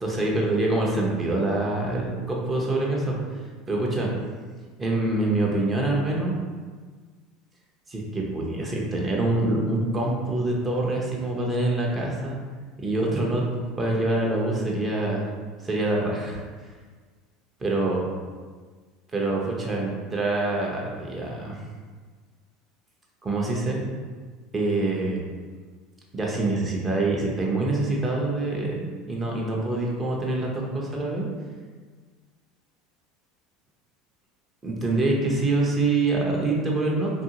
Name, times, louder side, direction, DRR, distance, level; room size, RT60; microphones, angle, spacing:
voice 1, 0.0-3.2 3.7-4.1 4.8-6.4 7.9-12.4 12.8-15.2 15.6-16.4 17.6-18.0 19.1-21.6 23.2-23.8 24.5-25.2 26.1-31.3 34.6-37.1, right 2 dB, 25° right, -2 dB, 0.8 m, -25 dB
2.9 x 2.6 x 2.8 m, 1.5 s
hypercardioid pair, 80°, 0 cm